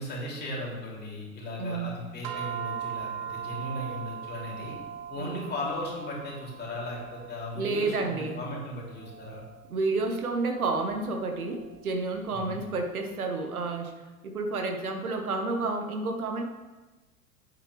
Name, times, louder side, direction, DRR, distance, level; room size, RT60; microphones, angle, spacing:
voice 1, 0.0-4.7 5.1-9.4 12.3-12.6, left 1 dB, 25° left, -4 dB, 3.2 m, -37 dB
voice 2, 1.6-1.9 5.1-5.5 7.5-8.4 9.7-13.9 14.2-16.5, right 3 dB, 80° right, 4 dB, 1.4 m, -30 dB
sound 1, 2.2-12.7, right 8 dB, 45° right, 1.1 m, -41 dB
9.3 x 7.5 x 3.4 m, 1.2 s
figure-of-eight pair, 90°, 43 cm